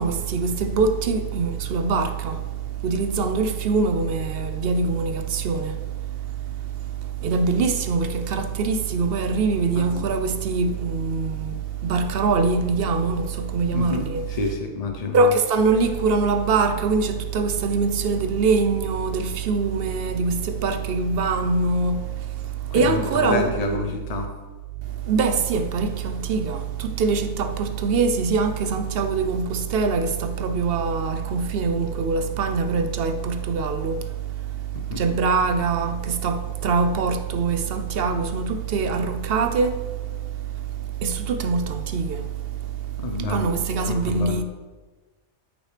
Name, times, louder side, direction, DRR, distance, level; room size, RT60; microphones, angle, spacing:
voice 1, 0.0-14.4 15.1-23.9 24.8-44.4, right 4 dB, 55° right, 0.7 m, -24 dB
voice 2, 9.8-10.1 13.7-14.0 14.3-15.3 22.7-24.3 34.7-35.0 43.0-43.5 43.8-44.4, left 4 dB, 45° left, 0.5 m, -29 dB
13.5 x 6.1 x 3.3 m
omnidirectional pair, 1.4 m